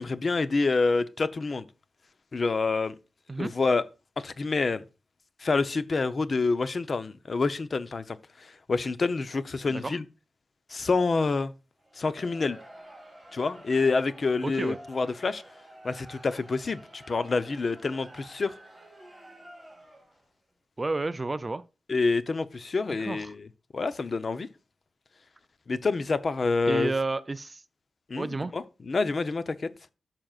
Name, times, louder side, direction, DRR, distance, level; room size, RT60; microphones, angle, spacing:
voice 1, 0.0-1.7 2.3-2.9 3.4-3.8 4.2-4.8 5.4-10.0 10.7-11.5 12.0-12.6 13.3-15.4 15.8-18.5 21.9-23.5 23.7-24.5 25.7-26.9 28.1-29.6, left 3 dB, 40° left, 0.6 m, -27 dB
Crowd, 11.8-20.3, right 1 dB, 5° right, 3.5 m, -50 dB
voice 2, 14.4-14.8 20.8-21.6 23.0-23.3 26.7-27.6 28.2-28.5, right 3 dB, 25° right, 0.4 m, -31 dB
14.0 x 5.9 x 2.4 m
wide cardioid pair, 165°, 0 cm